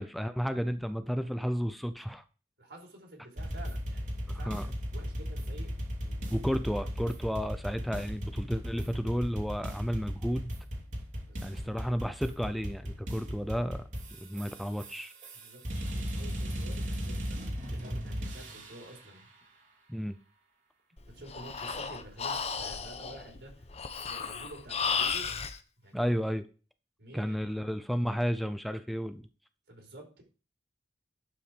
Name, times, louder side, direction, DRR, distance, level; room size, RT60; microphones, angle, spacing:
voice 1, 0.0-2.2 4.4-4.7 6.3-10.6 11.4-13.8 14.2-15.1 19.9-20.2 25.9-26.4 27.1-29.3, equal, ahead, 9 dB, 0.5 m, -32 dB
voice 2, 2.6-5.7 6.0-6.3 6.6-6.9 11.3-11.6 15.3-19.3 21.1-23.6 24.1-25.2 25.8-26.1 27.0-27.8 29.7-30.2, right 1 dB, 80° right, 0 dB, 4.7 m, -50 dB
sound 1, 3.4-18.9, equal, 45° right, 2.7 m, -36 dB
Breathing, 21.0-25.6, left 6 dB, 35° left, 0.9 m, -34 dB
11.5 x 5.8 x 5.1 m, 0.35 s
head